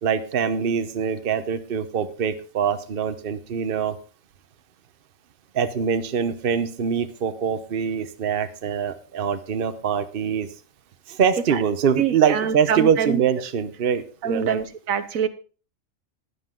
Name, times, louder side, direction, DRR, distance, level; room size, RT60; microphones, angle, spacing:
voice 1, 0.0-4.0 5.5-10.5 11.1-14.6, right 7 dB, 50° right, 10 dB, 1.0 m, -24 dB
voice 2, 12.0-13.2 14.2-15.3, right 7 dB, 80° right, 12 dB, 1.3 m, -25 dB
13.0 x 9.9 x 3.8 m, 0.37 s
omnidirectional pair, 1.4 m